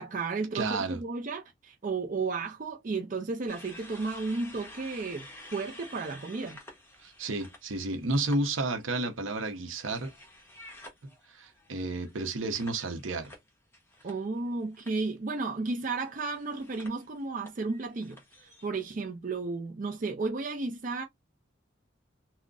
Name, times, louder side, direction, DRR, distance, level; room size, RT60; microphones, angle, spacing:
voice 1, 0.0-6.6 14.0-21.0, right 3 dB, 40° right, 0.4 m, -33 dB
voice 2, 0.5-1.0 7.0-10.1 11.3-13.3, right 2 dB, 80° right, 0.7 m, -31 dB
sound 1, 3.5-8.4 8.8-14.5 14.7-15.1 16.0-18.7, left 1 dB, 10° left, 0.8 m, -51 dB
3.7 x 2.1 x 2.3 m
head